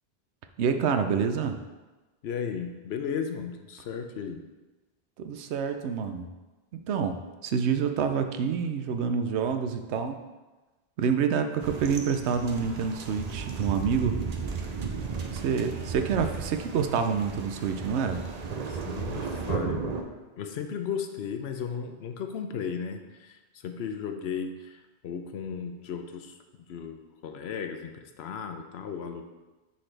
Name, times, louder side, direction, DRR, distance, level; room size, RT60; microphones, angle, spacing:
voice 1, 0.6-1.6 5.2-6.3 6.7-7.2 7.4-10.2 11.0-14.2 15.3-18.2, right 6 dB, 85° right, 7 dB, 0.9 m, -27 dB
voice 2, 2.2-4.4 18.5-20.0 20.4-26.4 26.7-29.2, left 6 dB, 75° left, 6 dB, 0.9 m, -35 dB
sound 1, 11.6-20.0, right 5 dB, 45° right, 0.6 m, -34 dB
9.9 x 4.1 x 3.3 m, 1.2 s
omnidirectional pair, 1.1 m